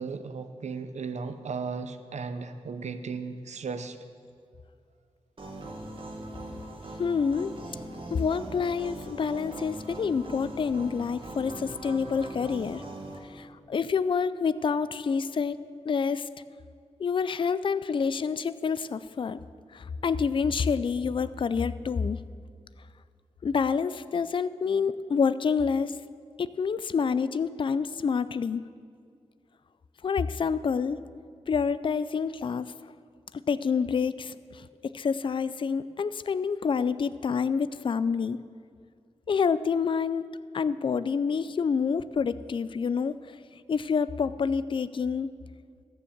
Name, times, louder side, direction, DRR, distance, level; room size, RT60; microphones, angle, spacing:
voice 1, 0.0-4.0, right 5 dB, 85° right, 9 dB, 0.7 m, -35 dB
sound 1, 5.4-13.2, right 1 dB, 50° right, 1.6 m, -41 dB
voice 2, 7.0-7.5 8.1-12.8 13.3-15.6 15.9-16.3 17.0-19.4 19.7-22.2 23.4-25.9 26.4-28.6 30.0-31.0 31.5-32.7 33.5-38.4 39.3-43.1 43.7-45.3, left 6 dB, 45° left, 15 dB, 0.3 m, -27 dB
14.0 x 7.1 x 7.1 m, 2.2 s
wide cardioid pair, 110°, 11 cm